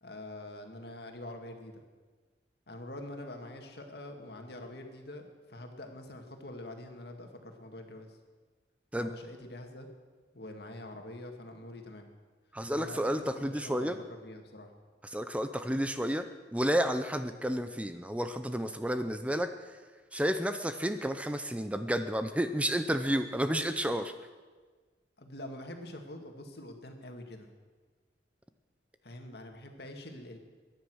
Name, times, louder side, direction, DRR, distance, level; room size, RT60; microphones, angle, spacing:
voice 1, 0.0-1.8 2.7-8.2 9.0-9.9 10.3-12.1 12.7-14.7 25.2-27.5 29.0-30.4, left 1 dB, 65° left, 4 dB, 2.2 m, -45 dB
voice 2, 12.5-14.0 15.0-19.8 20.1-24.1, equal, 10° right, 9 dB, 0.6 m, -31 dB
22.5 x 10.5 x 6.3 m, 1.4 s
head